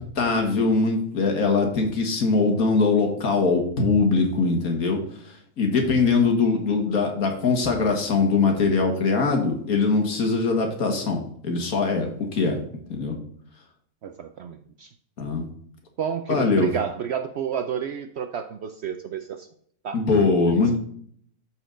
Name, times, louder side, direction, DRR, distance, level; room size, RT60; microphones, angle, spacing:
voice 1, 0.2-5.0 5.3-13.2 15.2-15.5 16.3-16.7 19.9-20.8, left 4 dB, 75° left, 3 dB, 2.0 m, -22 dB
voice 2, 14.0-14.9 16.0-19.5 19.8-20.0 20.5-20.8, right 8 dB, 65° right, 8 dB, 0.6 m, -30 dB
12.5 x 4.4 x 3.8 m, 0.62 s
omnidirectional pair, 1.5 m